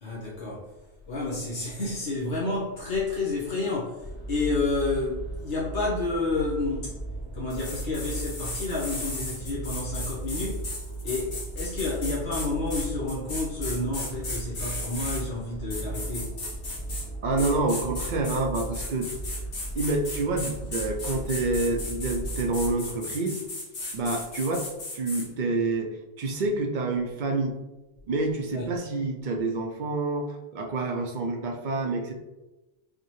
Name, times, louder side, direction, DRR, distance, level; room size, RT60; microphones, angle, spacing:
voice 1, 0.0-0.7 1.1-4.0 4.3-7.0 7.3-10.7 11.0-16.3 28.5-28.7, left 3 dB, 75° left, -6 dB, 1.2 m, -30 dB
sound 1, 4.0-22.7, right 2 dB, 20° left, 0.5 m, -37 dB
sound 2, 7.5-15.2 15.7-17.1 17.4-25.3, left 2 dB, 55° left, 1.1 m, -36 dB
voice 2, 17.2-19.1 19.7-23.4 23.9-24.7 24.9-27.6 28.1-32.1, right 2 dB, 55° right, 2 dB, 0.6 m, -28 dB
5.0 x 2.1 x 3.0 m, 1.0 s
omnidirectional pair, 1.2 m